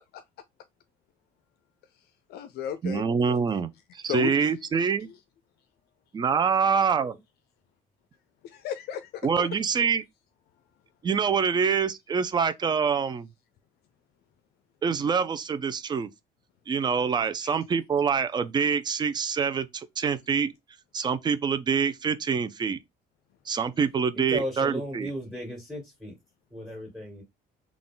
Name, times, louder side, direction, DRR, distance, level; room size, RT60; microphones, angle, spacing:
voice 1, 2.3-3.4 4.0-5.2 8.4-9.7 17.4-17.6, left 9 dB, 70° left, 0.4 m, -35 dB
voice 2, 2.8-5.1 6.1-7.1 9.2-10.0 11.0-13.3 14.8-16.1 16.7-20.5 20.9-22.8 23.5-25.1, right 6 dB, 25° right, 0.4 m, -25 dB
voice 3, 24.1-26.1 26.5-27.2, equal, ahead, 2.2 m, -35 dB
3.6 x 2.3 x 3.8 m
cardioid pair, 110°, 17 cm